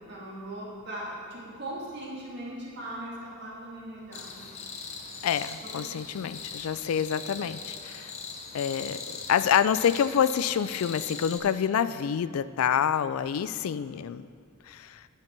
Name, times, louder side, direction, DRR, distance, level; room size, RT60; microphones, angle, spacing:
voice 1, 0.0-4.5, right 1 dB, 50° right, -5 dB, 2.0 m, -39 dB
sound 1, 4.1-11.4, left 5 dB, 30° left, 0.7 m, -41 dB
voice 2, 5.2-8.1 8.5-14.3 14.7-15.0, left 8 dB, 85° left, 15 dB, 0.3 m, -27 dB
9.5 x 5.8 x 6.0 m, 2.3 s
head